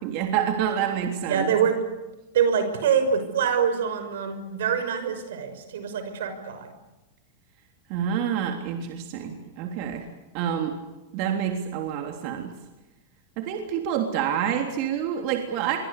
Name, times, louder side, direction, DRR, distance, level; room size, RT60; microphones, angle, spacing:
voice 1, 0.0-1.5 7.9-10.1 10.3-10.8 11.1-12.5 13.4-15.8, right 9 dB, 55° right, 3 dB, 3.3 m, -27 dB
voice 2, 1.3-1.8 2.3-6.7, right 7 dB, 85° right, 9 dB, 5.9 m, -25 dB
26.5 x 23.5 x 8.4 m, 1.0 s
supercardioid pair, 130°, 0 cm